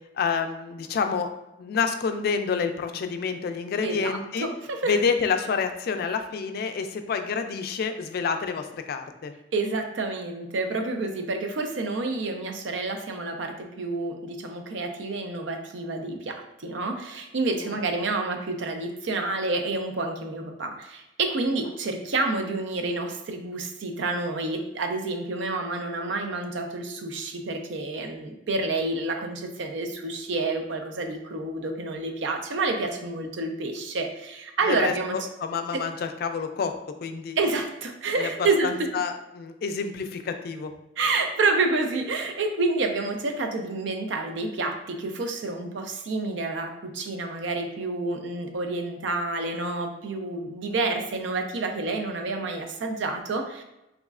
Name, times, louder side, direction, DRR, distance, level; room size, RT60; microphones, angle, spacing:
voice 1, 0.2-1.3 1.6-4.5 4.9-9.3 34.7-37.4 38.2-38.3 38.6-40.7, left 5 dB, 55° left, 7 dB, 0.3 m, -28 dB
voice 2, 3.8-5.0 9.5-35.2 35.7-35.8 37.4-38.9 41.0-53.6, right 3 dB, 75° right, 5 dB, 0.5 m, -29 dB
3.5 x 3.0 x 2.4 m, 0.92 s
head